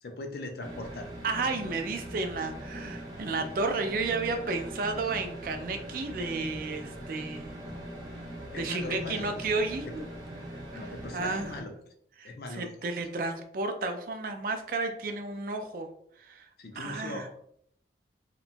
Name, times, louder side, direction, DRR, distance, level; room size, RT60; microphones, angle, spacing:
voice 1, 0.0-1.1 7.6-7.8 8.5-9.3 10.7-11.7 12.2-12.7 16.6-17.3, left 2 dB, 60° left, 5 dB, 0.4 m, -40 dB
sound 1, 0.6-11.6, equal, 25° right, 0.7 m, -41 dB
voice 2, 1.2-7.5 8.5-10.0 10.7-11.6 12.2-15.9 16.2-16.5 16.7-17.3, right 3 dB, 50° right, 6 dB, 0.3 m, -32 dB
2.9 x 2.2 x 2.5 m, 0.67 s
head